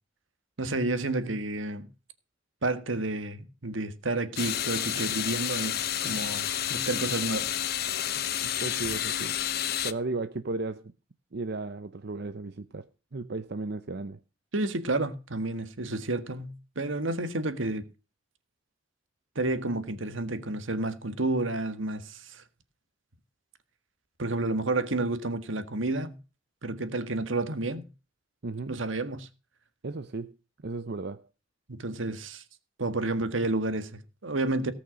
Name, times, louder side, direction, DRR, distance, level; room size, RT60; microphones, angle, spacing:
voice 1, 0.6-1.9 2.6-7.5 14.5-17.8 19.3-22.4 24.2-26.2 26.6-27.9 28.7-29.3 31.7-32.4 32.8-34.7, right 2 dB, 80° right, 1.6 m, -30 dB
sound 1, 4.4-9.9, left 10 dB, 55° left, 0.8 m, -30 dB
voice 2, 8.1-9.4 9.8-10.9 11.3-12.9 13.1-14.2 28.4-28.8 29.8-30.4 30.6-31.3, right 3 dB, 60° right, 0.7 m, -35 dB
18.0 x 6.1 x 6.2 m
head